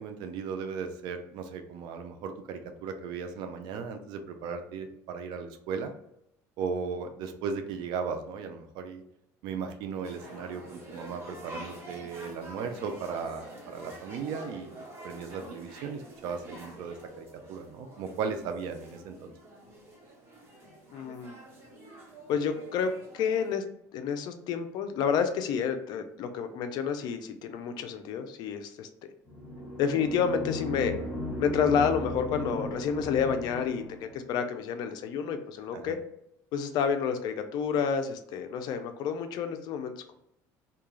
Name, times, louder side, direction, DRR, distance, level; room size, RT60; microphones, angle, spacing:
voice 1, 0.0-5.9 6.6-9.0 9.4-14.7 15.0-19.3 35.7-35.8, right 5 dB, 70° right, 7 dB, 0.4 m, -36 dB
sound 1, 10.0-23.6, right 1 dB, 30° right, 1.1 m, -47 dB
voice 2, 20.9-21.4 22.3-23.6 23.9-28.9 29.8-30.9 31.4-36.0 36.5-40.1, left 6 dB, 60° left, 8 dB, 0.4 m, -29 dB
sound 2, 29.3-34.2, left 1 dB, 5° left, 1.3 m, -36 dB
2.3 x 2.2 x 3.0 m, 0.77 s
supercardioid pair, 100°, 8 cm